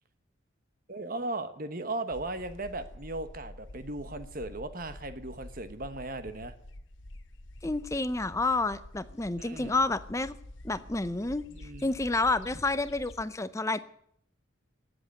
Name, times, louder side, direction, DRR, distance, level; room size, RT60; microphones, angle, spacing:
voice 1, 0.9-6.5 9.4-9.7 11.5-11.9, right 2 dB, 45° right, 10 dB, 1.2 m, -37 dB
sound 1, 2.1-13.3, left 1 dB, 65° left, 1.1 m, -48 dB
voice 2, 7.6-10.4 10.6-13.8, left 3 dB, 15° left, 14 dB, 0.6 m, -29 dB
18.5 x 8.0 x 9.4 m, 0.69 s
head